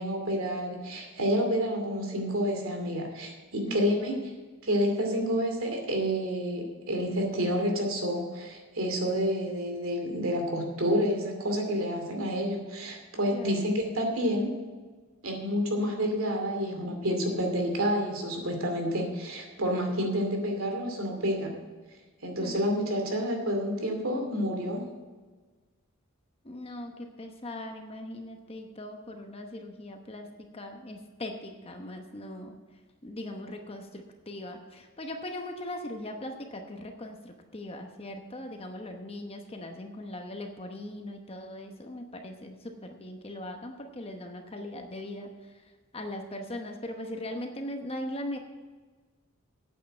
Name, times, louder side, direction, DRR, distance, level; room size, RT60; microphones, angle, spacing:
voice 1, 0.0-4.2 4.6-14.5 15.2-21.5 22.2-24.9, equal, 75° right, 3 dB, 2.5 m, -29 dB
voice 2, 3.6-4.4 13.3-13.6 22.4-22.6 26.4-32.6 33.0-45.6 45.9-48.4, left 1 dB, 25° left, 4 dB, 0.9 m, -40 dB
9.0 x 8.5 x 7.7 m, 1.4 s
head